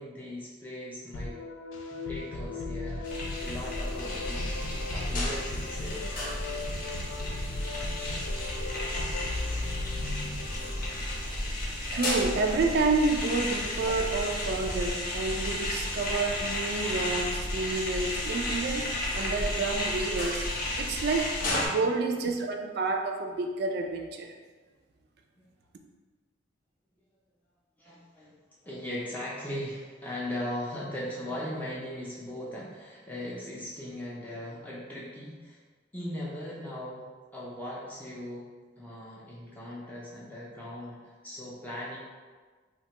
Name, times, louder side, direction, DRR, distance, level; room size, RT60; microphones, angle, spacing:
voice 1, 0.0-1.4 2.1-4.6 4.9-6.0 27.8-28.4 28.6-35.6 35.9-37.0 37.3-38.5 38.8-42.0, left 1 dB, 10° left, -7 dB, 0.4 m, -39 dB
sound 1, 1.1-11.2, left 2 dB, 85° left, 0.3 m, -37 dB
sound 2, 3.0-21.7, left 1 dB, 50° left, 0.6 m, -32 dB
voice 2, 11.9-18.9 19.1-20.5 20.8-21.3 21.6-24.3, right 3 dB, 60° right, 3 dB, 0.3 m, -29 dB
3.1 x 2.2 x 2.8 m, 1.4 s
head